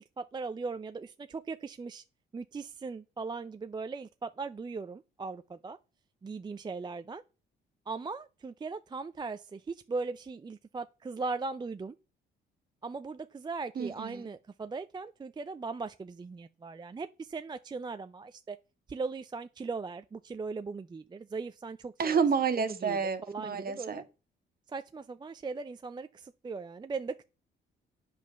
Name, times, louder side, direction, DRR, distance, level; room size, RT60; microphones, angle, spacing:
voice 1, 0.0-2.0 2.3-5.8 6.2-7.2 7.9-12.0 12.8-18.6 18.9-22.2 22.6-23.0 23.3-24.0 24.7-27.2, right 4 dB, 20° right, 0.5 m, -39 dB
voice 2, 13.7-14.3 22.0-24.0, right 6 dB, 50° right, 1.6 m, -29 dB
8.7 x 5.1 x 6.9 m
cardioid pair, 90°, 20 cm